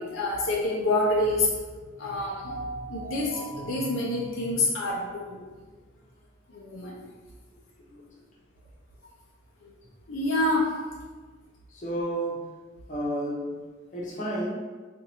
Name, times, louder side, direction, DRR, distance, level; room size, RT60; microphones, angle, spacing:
voice 1, 0.0-1.5 2.0-5.4 6.5-6.9 10.1-10.7, left 2 dB, 90° left, -4 dB, 0.7 m, -27 dB
voice 2, 11.7-12.5 12.9-13.6 13.9-14.5, right 1 dB, 40° left, -6 dB, 0.8 m, -31 dB
2.7 x 2.6 x 4.2 m, 1.4 s
head